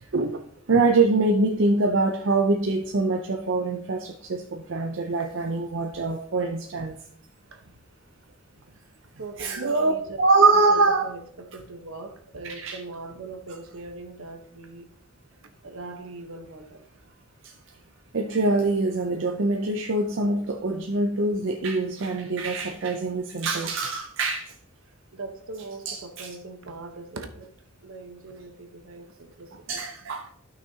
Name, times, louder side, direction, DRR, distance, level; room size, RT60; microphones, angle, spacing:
voice 1, 0.7-7.0 9.4-9.9 10.2-11.1 12.4-12.8 17.4-17.5 18.1-24.5 25.9-26.3 29.7-30.3, right 3 dB, 60° right, 0.6 m, -24 dB
voice 2, 9.2-10.2 10.5-14.9 15.6-16.9 25.1-27.5 27.8-30.1, right 3 dB, 75° right, 1.1 m, -41 dB
12.5 x 5.8 x 2.8 m
head